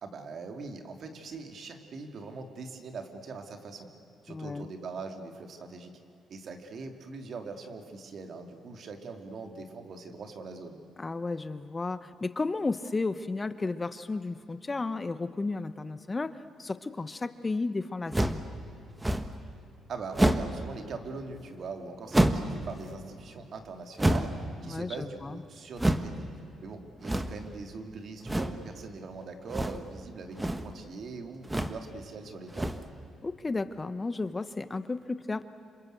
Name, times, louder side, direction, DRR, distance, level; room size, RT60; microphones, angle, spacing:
voice 1, 0.0-3.9 4.2-5.9 6.3-10.8 19.9-24.3 24.6-26.3 26.6-32.7, right 4 dB, 55° right, 5 dB, 3.0 m, -42 dB
voice 2, 4.3-4.7 11.0-18.5 24.6-25.4 33.2-35.5, left 3 dB, 25° left, 13 dB, 0.9 m, -33 dB
sound 1, 18.1-18.5 19.0-19.4 20.1-20.6 22.1-22.6 24.0-24.5 25.8-26.1 27.0-27.5 28.3-28.6 29.5-29.9 30.3-30.7 31.4-31.8 32.5-32.9, right 1 dB, 10° right, 1.6 m, -27 dB
27.5 x 26.5 x 8.1 m, 2.9 s
cardioid pair, 90°, 0 cm